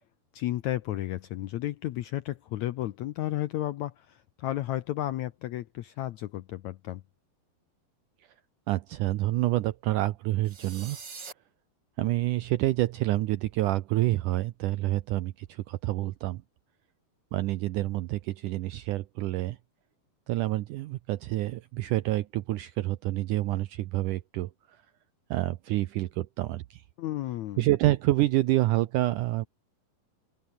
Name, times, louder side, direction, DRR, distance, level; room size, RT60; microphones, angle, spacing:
voice 1, 0.3-7.0 27.0-27.6, left 14 dB, 80° left, 1.6 m, -33 dB
voice 2, 8.7-11.0 12.0-16.4 17.3-19.6 20.3-24.5 25.3-26.8 27.6-29.5, right 16 dB, 75° right, 2.0 m, -28 dB
sound 1, 10.4-11.3, right 5 dB, 30° right, 3.0 m, -43 dB
open air
omnidirectional pair, 4.3 m